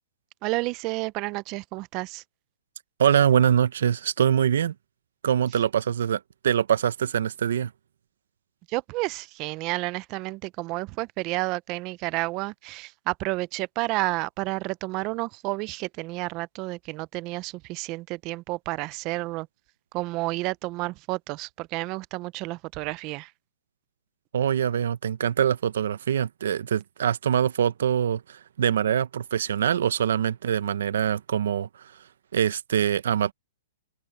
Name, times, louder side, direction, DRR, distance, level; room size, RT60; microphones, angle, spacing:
voice 1, 0.4-2.2 8.7-19.5 19.9-23.3, right 22 dB, 35° right, 0.6 m, -31 dB
voice 2, 3.0-4.7 5.2-7.7 24.3-31.9 32.3-33.3, right 9 dB, 70° right, 0.9 m, -24 dB
hypercardioid pair, 145°, 0 cm